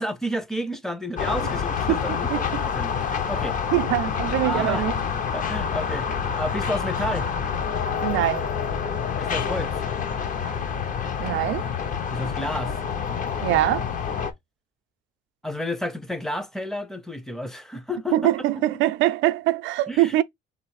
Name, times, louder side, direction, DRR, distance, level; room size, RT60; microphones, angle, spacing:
voice 1, 0.0-3.6 4.4-4.9 5.3-7.3 9.2-9.8 12.1-12.8 15.4-18.2 19.9-20.2, left 1 dB, ahead, 0.6 m, -31 dB
sound 1, 1.2-14.3, left 6 dB, 45° left, 0.7 m, -27 dB
voice 2, 1.9-2.6 3.7-4.9 8.0-8.5 11.2-11.7 13.4-13.9 18.1-20.2, right 16 dB, 85° right, 0.4 m, -23 dB
3.2 x 3.1 x 4.6 m
cardioid pair, 125°, 19 cm